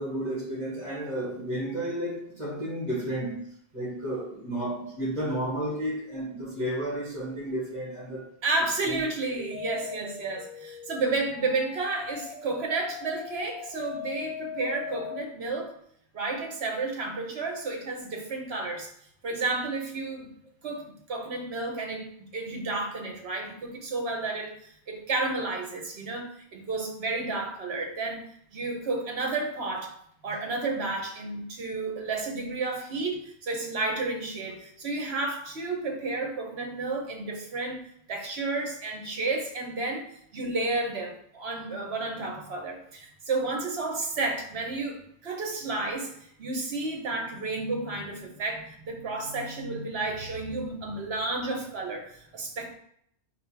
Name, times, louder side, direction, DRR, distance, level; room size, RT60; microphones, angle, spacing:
voice 1, 0.0-8.3 8.8-9.0, right 1 dB, 40° right, 2.3 m, -32 dB
voice 2, 8.4-15.7 16.1-18.9 19.2-20.4 20.6-28.2 28.5-29.9 30.2-52.8, right 3 dB, 70° right, 1.2 m, -31 dB
sound 1, 9.3-15.2, left 7 dB, 65° left, 1.3 m, -40 dB
4.2 x 2.8 x 4.5 m
omnidirectional pair, 1.1 m